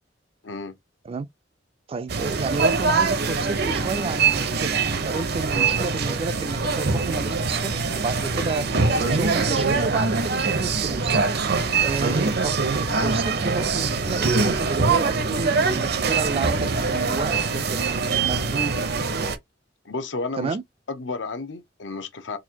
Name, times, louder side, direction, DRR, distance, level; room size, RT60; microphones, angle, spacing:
voice 1, 0.4-0.7 11.6-11.9 19.8-20.6 20.9-22.4, left 3 dB, 85° left, 0.7 m, -32 dB
voice 2, 1.9-8.6 9.1-11.2 11.8-18.8 20.4-20.6, right 4 dB, 30° right, 0.3 m, -31 dB
sound 1, 2.1-19.4, right 4 dB, 60° right, 0.7 m, -23 dB
4.0 x 2.5 x 2.8 m
head